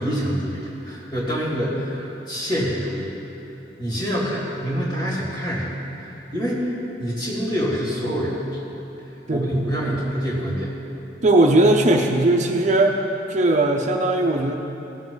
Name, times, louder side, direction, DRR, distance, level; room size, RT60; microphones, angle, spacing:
voice 1, 0.0-3.2 3.8-8.4 9.3-10.7, equal, 25° left, -6 dB, 2.9 m, -26 dB
voice 2, 11.2-13.0 13.3-14.6, right 2 dB, 45° right, 2 dB, 0.6 m, -18 dB
17.0 x 7.2 x 4.0 m, 2.9 s
head